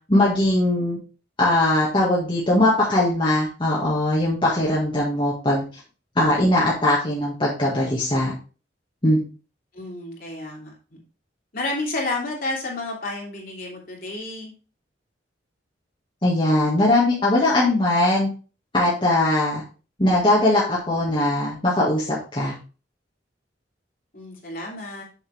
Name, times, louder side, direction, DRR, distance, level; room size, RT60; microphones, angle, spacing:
voice 1, 0.1-1.0 1.4-5.6 6.2-8.3 9.0-9.3 16.2-18.3 18.7-19.6 20.0-22.5, left 1 dB, 25° left, -6 dB, 1.8 m, -20 dB
voice 2, 9.7-11.0 11.5-14.5 24.1-25.0, left 2 dB, 50° left, -2 dB, 3.1 m, -31 dB
7.6 x 6.4 x 3.5 m, 0.35 s
head